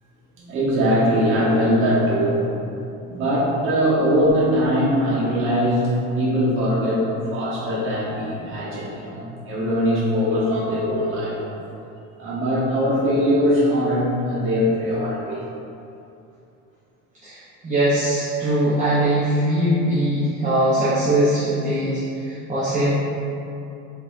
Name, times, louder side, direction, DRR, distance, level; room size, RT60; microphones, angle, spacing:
voice 1, 0.4-2.5 3.1-11.5 12.2-15.4, equal, 40° right, -8 dB, 1.0 m, -21 dB
voice 2, 17.2-23.0, right 1 dB, 25° right, -10 dB, 0.6 m, -21 dB
3.5 x 3.1 x 2.4 m, 2.7 s
cardioid pair, 145°, 31 cm